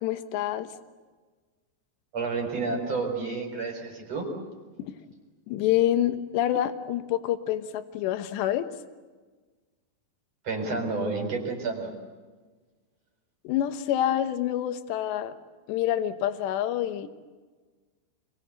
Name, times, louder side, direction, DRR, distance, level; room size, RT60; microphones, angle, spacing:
voice 1, 0.0-0.7 4.8-4.9 5.5-8.7 13.4-15.3 15.7-17.1, left 12 dB, 80° left, 10 dB, 3.3 m, -27 dB
voice 2, 2.1-4.3 10.4-11.9, right 3 dB, 35° right, 4 dB, 5.2 m, -30 dB
28.0 x 23.0 x 8.2 m, 1.4 s
omnidirectional pair, 4.9 m